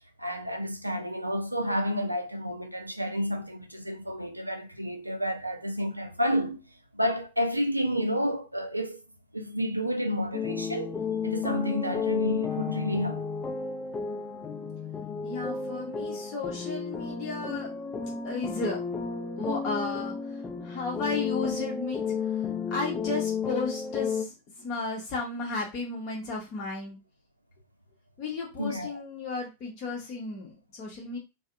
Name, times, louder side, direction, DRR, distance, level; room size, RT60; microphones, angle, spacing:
voice 1, 0.2-6.6 6.9-9.0 9.3-11.0 11.2-13.3 28.6-29.0, equal, 85° right, 0.4 m, -30 dB
sound 1, 10.3-24.2, left 6 dB, 20° left, 0.4 m, -32 dB
voice 2, 15.2-17.7 18.2-18.8 19.4-27.0 28.2-31.2, left 3 dB, 40° left, 0.7 m, -34 dB
2.5 x 2.0 x 2.4 m
figure-of-eight pair, 90°, 0 cm